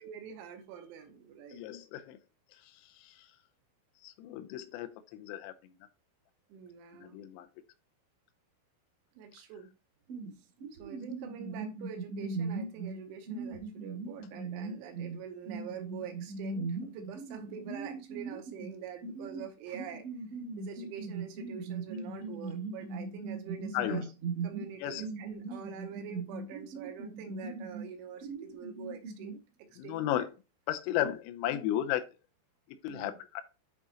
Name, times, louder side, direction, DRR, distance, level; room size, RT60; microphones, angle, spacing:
voice 1, 0.0-1.6 6.5-7.2 9.2-9.7 10.4-20.1 20.6-24.1 24.4-30.2 31.0-31.1 32.9-33.1, right 8 dB, 80° right, 3.0 m, -46 dB
voice 2, 1.5-2.2 3.0-3.1 4.0-5.7 6.9-7.5 23.7-24.1 24.8-25.1 29.8-30.3 30.7-32.0 32.8-33.4, left 12 dB, 85° left, 3.3 m, -34 dB
sound 1, 10.1-10.3 10.6-15.2 15.4-18.7 19.0-27.9 28.2-29.3, right 4 dB, 60° right, 1.4 m, -39 dB
10.5 x 3.7 x 2.9 m
omnidirectional pair, 6.0 m